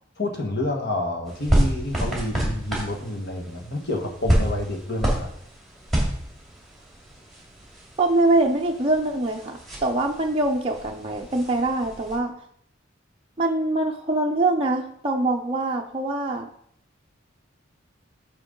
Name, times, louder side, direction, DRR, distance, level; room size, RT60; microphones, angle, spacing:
voice 1, 0.2-5.3, left 1 dB, 55° left, 2 dB, 1.3 m, -28 dB
sound 1, 1.3-12.2, right 1 dB, ahead, 2.2 m, -29 dB
voice 2, 8.0-12.4 13.4-16.5, right 2 dB, 25° right, 0 dB, 0.5 m, -23 dB
9.0 x 5.1 x 3.7 m, 0.68 s
head